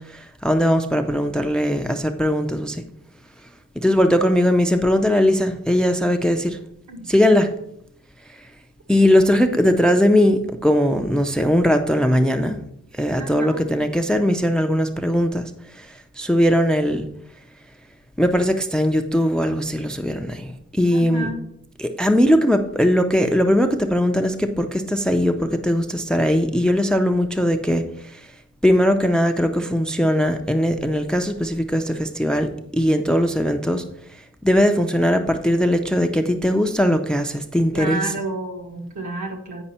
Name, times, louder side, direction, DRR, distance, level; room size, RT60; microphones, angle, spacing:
voice 1, 0.0-2.8 3.8-6.6 7.1-7.5 8.9-12.6 12.9-17.1 18.2-21.3 21.8-28.3 28.6-33.8 34.4-38.0, equal, 5° left, 7 dB, 0.4 m, -20 dB
voice 2, 13.2-13.7 20.9-21.5 37.7-39.6, right 2 dB, 70° right, 1 dB, 1.5 m, -30 dB
8.9 x 5.2 x 4.2 m, 0.73 s
wide cardioid pair, 145°, 30 cm